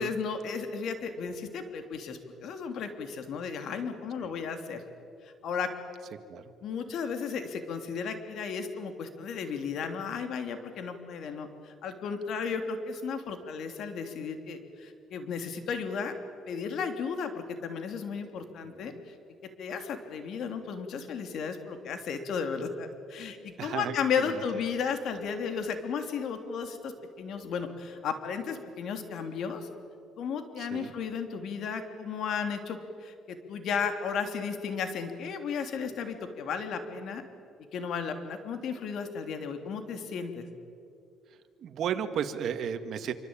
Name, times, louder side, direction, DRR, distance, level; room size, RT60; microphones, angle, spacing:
voice 1, 0.0-4.8 5.2-5.7 6.6-16.1 16.5-19.1 19.6-26.9 27.2-29.7 30.2-37.2 37.7-40.5, left 6 dB, 65° left, 6 dB, 3.1 m, -34 dB
voice 2, 18.6-19.0 23.6-24.4 30.6-30.9 41.6-43.1, right 8 dB, 60° right, 8 dB, 2.0 m, -34 dB
27.0 x 25.0 x 8.9 m, 2.5 s
cardioid pair, 115°, 0 cm